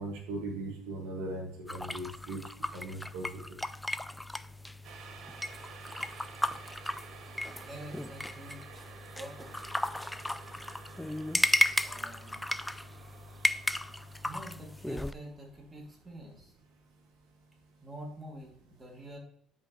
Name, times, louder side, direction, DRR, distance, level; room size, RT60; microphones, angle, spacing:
voice 1, 0.0-2.4 2.7-3.3 6.0-6.1, right 2 dB, 85° right, 1 dB, 1.7 m, -38 dB
sound 1, 1.7-15.1, left 1 dB, 5° left, 0.3 m, -35 dB
sound 2, 4.8-16.9 17.3-17.4, right 6 dB, 60° right, 0.9 m, -52 dB
voice 2, 7.6-8.9 9.1-9.7 11.8-12.6 14.2-16.5 17.8-19.2, right 1 dB, 20° right, -1 dB, 2.4 m, -47 dB
10.0 x 5.0 x 3.0 m, 0.65 s
cardioid pair, 105°, 0 cm